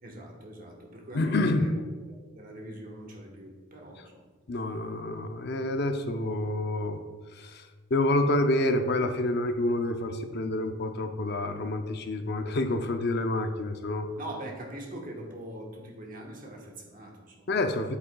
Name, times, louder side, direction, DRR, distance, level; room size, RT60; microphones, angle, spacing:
voice 1, 0.0-1.7 2.1-4.3 14.2-17.7, right 1 dB, 40° right, 0 dB, 1.2 m, -43 dB
voice 2, 1.1-1.7 4.5-7.0 7.4-14.1 17.5-18.0, left 2 dB, 50° left, 7 dB, 0.5 m, -28 dB
8.3 x 7.6 x 2.3 m, 1.4 s
head